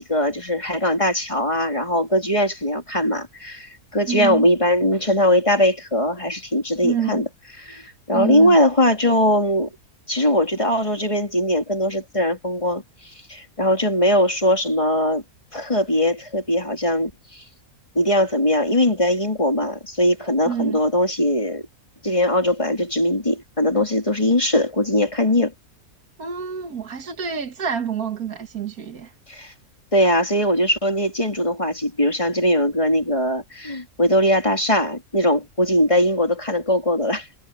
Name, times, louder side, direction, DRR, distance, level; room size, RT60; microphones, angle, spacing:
voice 1, 0.0-7.3 7.6-9.7 10.1-12.8 13.3-15.2 15.5-17.1 18.0-21.6 22.0-25.5 29.3-29.5 29.9-37.3, left 1 dB, 20° left, 3.7 m, -20 dB
voice 2, 4.1-4.5 6.8-7.2 8.1-8.6 20.5-20.8 26.2-29.1, right 8 dB, 85° right, 2.0 m, -27 dB
omnidirectional pair, 1.5 m